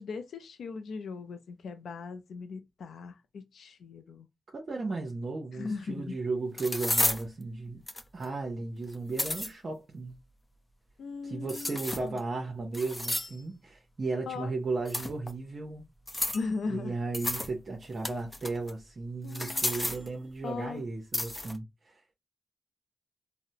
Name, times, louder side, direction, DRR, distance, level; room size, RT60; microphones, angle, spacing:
voice 1, 0.0-4.3 5.5-6.2 11.0-12.2 14.3-14.5 16.3-17.0 19.2-19.7 20.4-20.8, left 4 dB, 90° left, 0.4 m, -38 dB
voice 2, 4.5-7.8 8.1-10.2 11.2-15.8 16.6-22.0, right 3 dB, 55° right, 0.7 m, -35 dB
big kitchen knife, 5.7-5.8 6.6-7.2 7.9-8.2 8.9-9.5 11.5-12.2 12.7-13.4 14.9-15.3 16.1-16.5 17.1-17.5 17.8-18.7 19.3-20.1 21.1-21.6, left 1 dB, 20° left, 0.6 m, -32 dB
4.0 x 2.1 x 2.7 m
cardioid pair, 70°, 0 cm